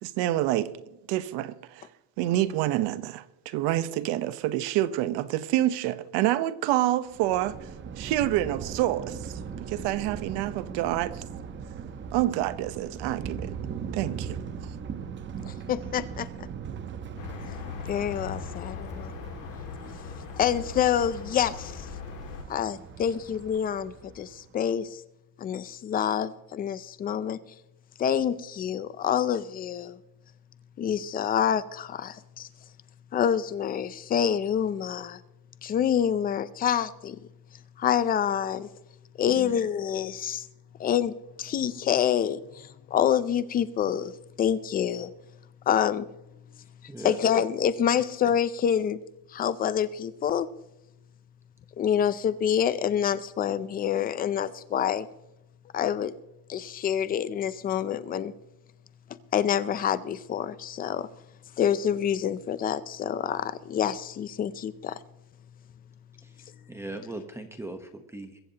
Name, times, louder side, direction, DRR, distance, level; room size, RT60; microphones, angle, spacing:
voice 1, 0.0-0.7 1.1-1.9 2.2-7.7 8.0-11.2 12.1-13.6 13.9-14.7, right 14 dB, 70° right, 1.0 m, -27 dB
Thunder, 7.1-24.5, right 7 dB, 25° right, 0.9 m, -39 dB
voice 2, 15.4-16.3 17.9-19.1 20.4-21.9 22.5-25.0 25.4-27.4 28.0-30.0 30.8-32.5 33.1-35.2 35.6-37.2 37.8-38.7 39.2-40.5 40.8-44.1 44.4-45.1 45.7-46.1 47.0-49.0 49.3-50.5 51.8-55.1 55.7-56.1 56.5-58.3 59.3-61.1 61.6-65.0, left 9 dB, 20° left, 0.4 m, -27 dB
sound 1, 17.2-22.4, left 6 dB, 75° left, 2.4 m, -39 dB
voice 3, 46.6-47.2 47.9-48.0 66.2-68.4, right 2 dB, 5° right, 1.0 m, -40 dB
23.0 x 15.0 x 2.9 m
cardioid pair, 165°, 43 cm